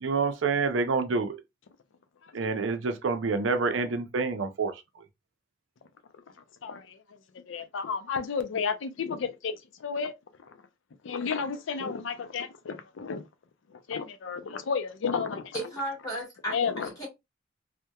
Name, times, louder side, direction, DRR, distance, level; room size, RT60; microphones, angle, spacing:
voice 1, 0.0-1.4 2.3-4.7, right 4 dB, 75° right, 0.5 m, -27 dB
voice 2, 6.6-7.0 7.3-10.1 10.4-10.6 11.0-13.3 13.7-15.6 16.5-17.1, left 5 dB, 75° left, 0.4 m, -32 dB
voice 3, 15.5-17.1, right 1 dB, 20° left, 1.4 m, -35 dB
2.8 x 2.1 x 2.2 m
head